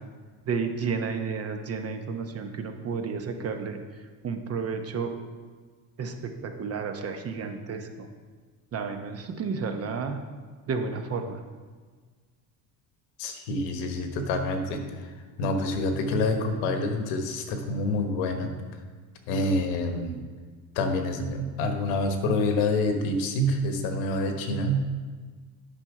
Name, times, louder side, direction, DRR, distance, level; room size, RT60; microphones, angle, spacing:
voice 1, 0.5-3.8 4.2-5.1 6.0-8.1 8.7-10.2 10.7-11.4, right 5 dB, 35° right, 6 dB, 0.9 m, -31 dB
voice 2, 13.2-15.1 15.4-18.5 19.3-20.2 20.7-24.9, left 1 dB, 85° left, 6 dB, 1.3 m, -27 dB
8.9 x 5.8 x 4.9 m, 1.5 s
cardioid pair, 125°, 43 cm